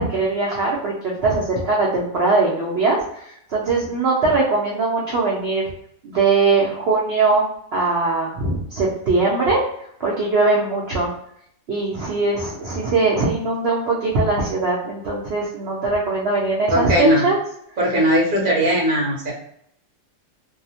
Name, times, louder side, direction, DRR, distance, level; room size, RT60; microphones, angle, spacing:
voice 1, 0.0-5.7 6.0-9.6 10.0-11.1 11.7-17.4, right 3 dB, 85° right, -4 dB, 0.5 m, -21 dB
voice 2, 16.7-17.2 17.8-19.3, equal, 45° right, -3 dB, 0.7 m, -18 dB
2.7 x 2.0 x 2.7 m, 0.71 s
omnidirectional pair, 1.7 m